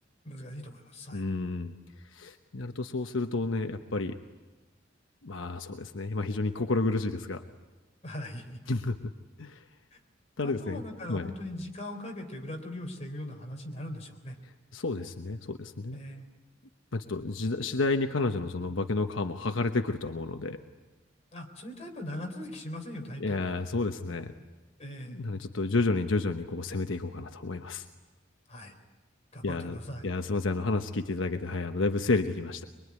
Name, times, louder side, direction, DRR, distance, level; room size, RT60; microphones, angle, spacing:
voice 1, 0.2-1.3 8.0-8.6 9.9-10.0 10.4-14.4 15.9-16.3 21.3-23.4 24.8-25.2 28.5-28.7 29.3-30.0, left 1 dB, 35° left, 2 dB, 3.7 m, -40 dB
voice 2, 1.1-1.8 2.1-4.1 5.2-7.4 8.7-9.1 9.4-9.6 10.4-10.8 11.1-11.3 14.7-16.0 16.9-20.6 23.2-24.3 25.1-27.8 29.4-29.8 30.0-32.6, left 3 dB, 80° left, 6 dB, 1.1 m, -30 dB
23.5 x 23.0 x 9.6 m, 1.2 s
head